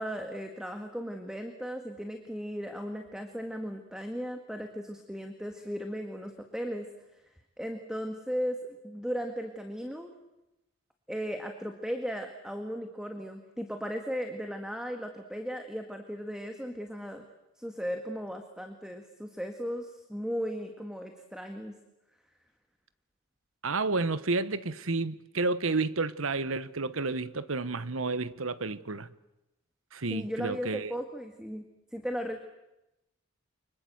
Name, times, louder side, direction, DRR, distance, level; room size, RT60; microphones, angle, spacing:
voice 1, 0.0-6.9 7.6-10.1 11.1-17.2 17.6-21.7 30.1-31.6 31.9-32.4, equal, 5° right, 1.7 m, -36 dB
voice 2, 23.6-29.1 29.9-30.9, right 3 dB, 75° right, 1.2 m, -31 dB
29.5 x 25.0 x 7.9 m
head